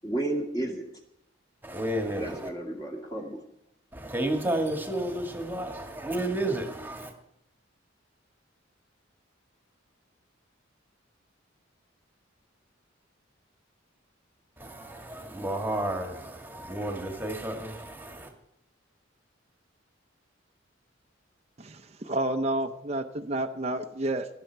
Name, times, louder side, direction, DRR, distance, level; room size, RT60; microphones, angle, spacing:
voice 1, 0.0-0.9 2.1-3.4, right 1 dB, 20° left, 0 dB, 2.2 m, -32 dB
voice 2, 1.6-2.5 3.9-7.1 14.6-18.3, right 1 dB, 10° right, 3 dB, 1.7 m, -32 dB
voice 3, 21.6-24.3, right 1 dB, 35° right, 5 dB, 0.7 m, -30 dB
18.5 x 11.0 x 4.6 m, 0.79 s
head